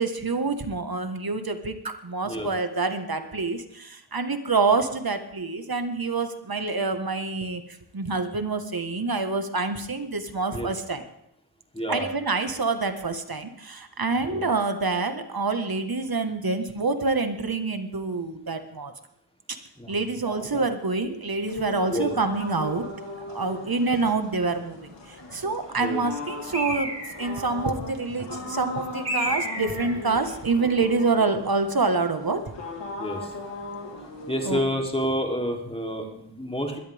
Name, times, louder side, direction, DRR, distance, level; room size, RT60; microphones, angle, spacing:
voice 1, 0.0-7.6 7.9-11.0 11.9-18.9 19.9-22.9 23.3-24.9 25.3-26.9 27.2-32.5 34.5-34.6, right 3 dB, 55° right, 7 dB, 1.8 m, -26 dB
voice 2, 11.7-12.1 14.3-14.5 19.8-19.9 20.3-20.6 21.9-22.1 25.8-26.0 33.0-33.3 34.3-36.8, equal, 15° left, 1 dB, 3.5 m, -29 dB
sound 1, 21.5-34.6, left 2 dB, 85° left, 3.1 m, -38 dB
Bird, 26.5-27.4 29.1-30.0, right 1 dB, 35° right, 4.4 m, -30 dB
21.5 x 12.5 x 3.7 m, 0.78 s
cardioid pair, 40°, 43 cm